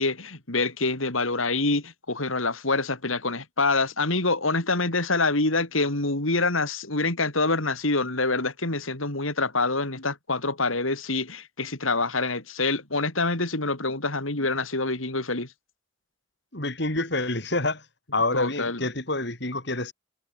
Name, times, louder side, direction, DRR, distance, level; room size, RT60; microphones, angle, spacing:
voice 1, 0.0-15.5 18.3-18.8, left 3 dB, 80° left, 4.5 m, -26 dB
voice 2, 16.5-17.9 18.1-19.9, left 2 dB, 55° left, 5.8 m, -27 dB
head